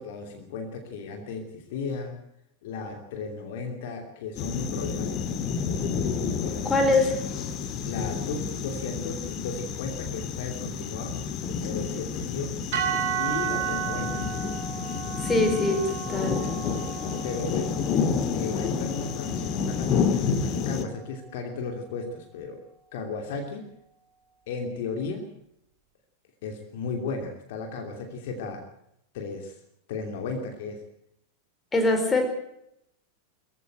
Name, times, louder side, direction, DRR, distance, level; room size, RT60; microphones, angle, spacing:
voice 1, 0.0-2.2 2.6-6.7 7.8-11.2 11.6-12.6 13.1-14.2 15.6-15.8 17.2-17.7 18.3-22.6 22.9-23.7 24.5-25.3 26.4-28.6 29.1-29.6 29.9-30.8, left 4 dB, 50° left, 4 dB, 2.8 m, -35 dB
sound 1, 4.4-20.9, left 6 dB, 35° left, 1.7 m, -30 dB
voice 2, 6.6-7.2 15.2-16.4 31.7-32.3, left 2 dB, 15° left, 5 dB, 4.4 m, -23 dB
sound 2, 12.7-21.0, right 10 dB, 50° right, 3.8 m, -34 dB
22.5 x 15.0 x 7.9 m, 0.76 s
figure-of-eight pair, 90°, 0 cm